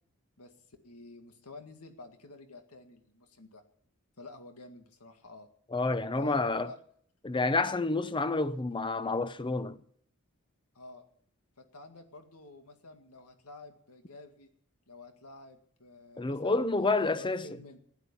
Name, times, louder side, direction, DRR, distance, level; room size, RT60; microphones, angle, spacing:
voice 1, 0.4-3.6 4.2-5.5 6.2-6.8 10.7-11.0 11.6-14.5 14.9-17.8, left 2 dB, 85° left, 2.0 m, -50 dB
voice 2, 5.7-6.7 7.2-9.8 16.2-17.5, left 3 dB, 20° left, 0.7 m, -29 dB
15.5 x 11.5 x 7.1 m
head